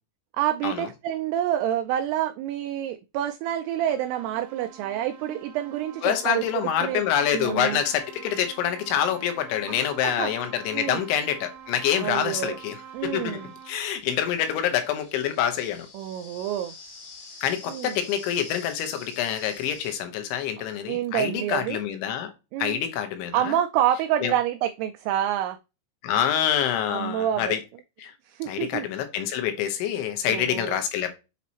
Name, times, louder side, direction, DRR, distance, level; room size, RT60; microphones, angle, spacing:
voice 1, 0.3-7.0 7.3-7.8 9.7-10.3 10.7-11.0 12.0-12.6 12.9-13.5 15.9-16.7 17.7-18.0 20.9-21.8 22.5-22.8 23.3-25.6 26.9-27.6 28.3-28.9 30.3-30.8, right 11 dB, 90° right, 2.3 m, -28 dB
sound 1, 3.6-13.9, right 8 dB, 60° right, 2.1 m, -46 dB
voice 2, 6.0-15.9 17.4-22.3 22.6-23.6 24.2-24.3 26.0-27.6 28.0-28.1 28.5-31.1, left 9 dB, 90° left, 3.5 m, -26 dB
sound 2, 11.5-11.6 12.5-20.0, left 3 dB, 60° left, 2.4 m, -47 dB
8.0 x 4.1 x 2.9 m
omnidirectional pair, 5.2 m